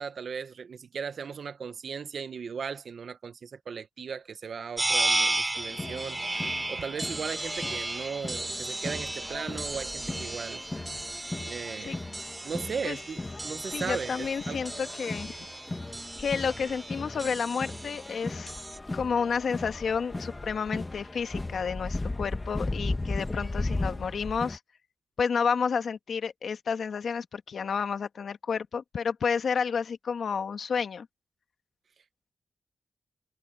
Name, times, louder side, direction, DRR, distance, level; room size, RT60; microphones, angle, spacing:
voice 1, 0.0-10.6 11.4-12.0 12.4-14.6, right 6 dB, 70° right, 1.3 m, -37 dB
sound 1, 4.8-18.8, right 2 dB, 20° right, 5.6 m, -34 dB
sound 2, 5.6-24.6, left 2 dB, 25° left, 1.4 m, -37 dB
voice 2, 13.7-15.4 16.2-18.5 18.9-24.6 25.2-31.1, left 6 dB, 75° left, 1.7 m, -30 dB
cardioid pair, 90°, 0 cm